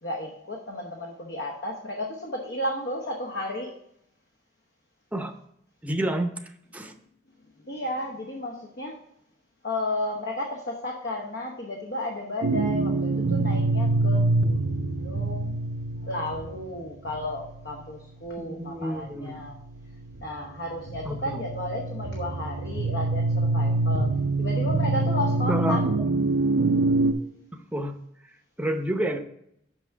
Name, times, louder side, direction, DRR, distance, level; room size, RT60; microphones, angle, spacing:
voice 1, 0.0-3.7 7.7-9.0 9.6-15.6 16.0-19.6 20.2-24.1 24.4-25.8, left 1 dB, 65° left, 0 dB, 1.0 m, -33 dB
voice 2, 5.8-6.3 6.7-6.9 18.4-19.4 21.0-21.4 25.5-25.8 27.5-28.0 28.6-29.2, right 1 dB, 10° right, 5 dB, 0.7 m, -29 dB
sound 1, 12.4-17.6 19.6-27.1, right 2 dB, 85° right, 0.6 m, -25 dB
6.0 x 5.9 x 4.5 m, 0.74 s
head